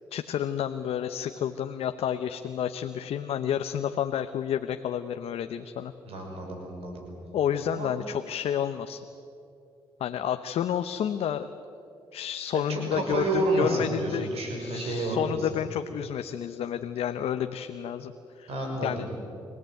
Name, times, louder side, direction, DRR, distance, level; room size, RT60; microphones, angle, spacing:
voice 1, 0.1-5.9 7.3-9.0 10.0-11.5 12.1-14.3 14.6-18.5 18.8-19.1, left 9 dB, 75° left, 8 dB, 0.9 m, -30 dB
voice 2, 6.0-7.1 7.8-7.9 12.7-15.6 18.5-19.1, right 2 dB, 75° right, 1 dB, 6.0 m, -30 dB
25.5 x 17.0 x 9.3 m, 2.7 s
supercardioid pair, 55°, 10 cm